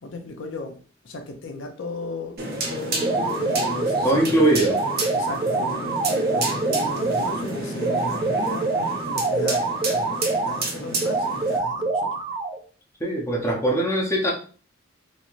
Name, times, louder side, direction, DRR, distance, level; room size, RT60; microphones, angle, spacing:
voice 1, 0.0-0.8 1.0-2.4 2.7-4.7 5.1-6.0 6.3-8.7 9.0-12.2 13.5-13.7, left 2 dB, 65° left, 4 dB, 0.5 m, -35 dB
sound 1, 2.4-11.6, right 2 dB, 50° right, 0.7 m, -30 dB
sound 2, 3.0-4.2 4.6-7.4 7.8-10.6 11.0-12.6, right 3 dB, 25° right, 0.3 m, -25 dB
voice 2, 4.0-4.8 13.0-14.3, right 1 dB, 15° left, -2 dB, 0.7 m, -21 dB
3.0 x 2.7 x 2.5 m, 0.41 s
head